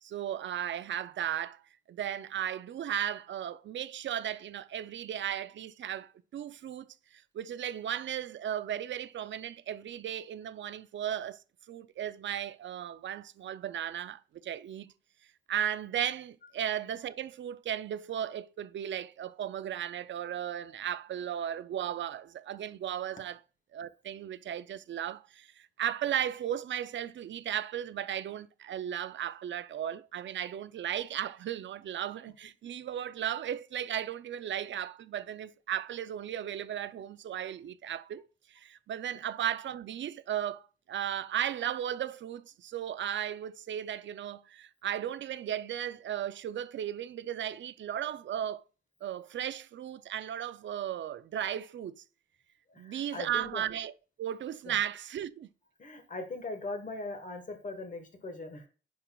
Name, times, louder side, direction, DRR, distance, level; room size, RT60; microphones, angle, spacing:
voice 1, 0.0-1.6 1.9-11.4 11.7-14.9 15.5-23.4 23.7-40.6 40.9-48.6 49.0-52.0 52.8-53.9 54.2-55.5, right 10 dB, 75° right, 0.4 m, -35 dB
voice 2, 52.7-53.6 54.6-54.7 55.8-58.7, left 2 dB, 40° left, 1.4 m, -40 dB
10.0 x 4.4 x 2.3 m
wide cardioid pair, 135°, 19 cm